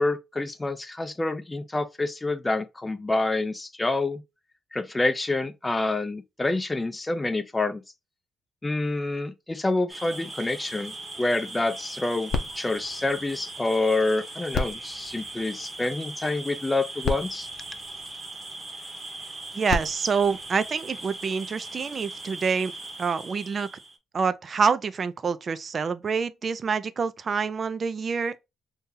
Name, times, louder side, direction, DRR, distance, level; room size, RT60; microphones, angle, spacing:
voice 1, 0.0-4.2 4.7-7.8 8.6-17.5, left 2 dB, 15° left, 0.5 m, -27 dB
sound 1, 9.9-24.0, right 2 dB, 20° right, 0.9 m, -39 dB
sound 2, 12.3-13.9 14.5-16.1 16.7-16.8 17.0-18.6 19.4-21.3 22.0-22.1, left 4 dB, 60° left, 0.6 m, -34 dB
voice 2, 19.5-22.7 23.0-23.7 24.1-28.4, right 5 dB, 40° right, 0.4 m, -27 dB
2.7 x 2.7 x 3.7 m
cardioid pair, 90°, 0 cm